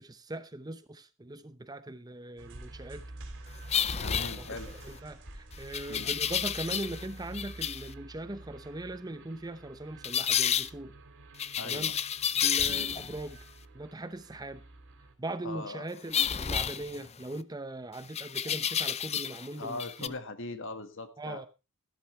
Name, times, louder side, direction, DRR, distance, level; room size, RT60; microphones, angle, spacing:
voice 1, 0.0-3.1 4.4-4.5 4.8-10.9 11.6-12.0 12.4-13.4 13.7-14.6 15.2-20.2 21.2-21.5, right 2 dB, 15° right, 0.7 m, -40 dB
sound 1, 2.4-15.1, right 2 dB, 55° right, 3.2 m, -48 dB
sound 2, 3.7-4.9 5.7-7.1 7.3-7.9 10.0-10.7 11.4-13.2 16.1-17.4 18.1-19.5 19.7-20.1, left 8 dB, 30° left, 0.5 m, -30 dB
voice 2, 4.0-4.7 5.9-6.1 11.6-12.0 12.7-12.9 15.4-15.9 19.6-21.4, left 2 dB, 60° left, 1.7 m, -40 dB
14.5 x 12.5 x 3.2 m
head